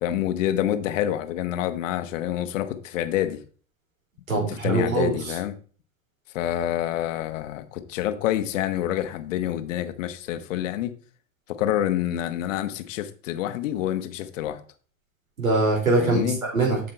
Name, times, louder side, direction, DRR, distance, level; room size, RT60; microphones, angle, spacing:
voice 1, 0.0-3.4 4.5-5.5 6.3-10.9 11.5-14.6 16.0-16.4, left 12 dB, 65° left, 1.2 m, -27 dB
voice 2, 4.3-5.4 15.4-16.9, right 2 dB, 90° right, 4.4 m, -23 dB
8.0 x 6.4 x 4.5 m
hypercardioid pair, 85°, 40 cm